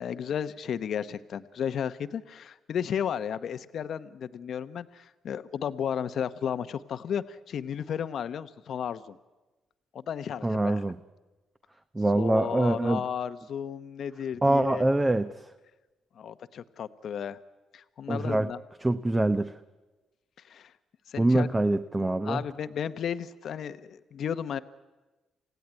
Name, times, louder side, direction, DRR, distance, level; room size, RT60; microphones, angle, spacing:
voice 1, 0.0-9.2 9.9-10.8 12.1-14.9 16.2-17.4 17.7-18.6 20.4-20.7 21.1-21.5 22.2-24.6, left 8 dB, 65° left, 13 dB, 1.0 m, -33 dB
voice 2, 10.4-11.0 11.9-13.0 14.4-15.3 18.1-18.5 18.8-19.5 21.2-22.4, right 2 dB, 15° right, 10 dB, 0.9 m, -24 dB
28.5 x 16.5 x 9.6 m, 1.2 s
cardioid pair, 90°, 0 cm